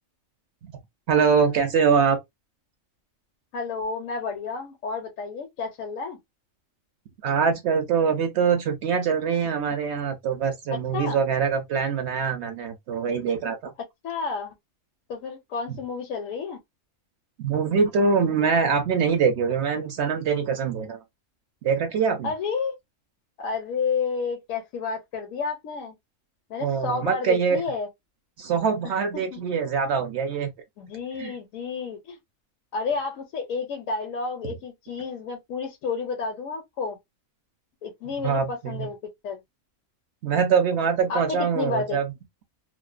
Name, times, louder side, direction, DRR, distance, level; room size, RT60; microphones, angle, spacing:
voice 1, 1.1-2.2 7.2-13.7 15.7-15.8 17.4-21.0 21.6-22.3 26.6-27.6 28.4-30.5 31.2-31.4 38.2-38.9 40.2-42.1, right 6 dB, 65° right, 0.8 m, -23 dB
voice 2, 3.5-6.2 10.9-11.2 14.0-14.5 15.1-16.6 22.2-22.8 23.4-25.9 26.5-27.9 28.8-29.4 30.8-32.2 32.7-37.0 37.8-39.0 39.2-39.4 41.1-42.0, left 5 dB, 85° left, 1.0 m, -31 dB
2.5 x 2.1 x 2.3 m
omnidirectional pair, 1.4 m